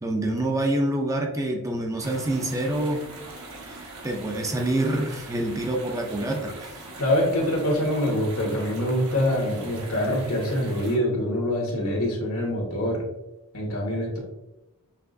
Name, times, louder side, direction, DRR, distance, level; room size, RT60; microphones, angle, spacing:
voice 1, 0.0-3.0 3.5-6.8, right 1 dB, 15° right, 2 dB, 0.5 m, -27 dB
sound 1, 2.0-11.0, right 2 dB, 75° right, 1.1 m, -41 dB
voice 2, 7.0-13.0 13.5-14.2, left 1 dB, 75° left, -1 dB, 1.4 m, -25 dB
5.8 x 2.9 x 2.5 m, 0.95 s
head